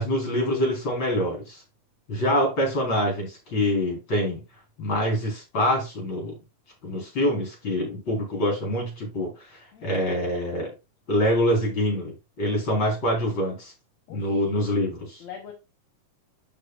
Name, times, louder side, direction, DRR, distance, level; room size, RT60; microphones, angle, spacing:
voice 1, 0.0-1.6 2.1-4.4 4.8-6.3 6.8-10.7 11.1-13.7 14.1-15.2, equal, 40° left, 4.9 m, -25 dB
voice 2, 14.1-14.5 15.2-15.5, left 8 dB, 70° left, 2.5 m, -43 dB
12.5 x 4.6 x 2.5 m
omnidirectional pair, 3.4 m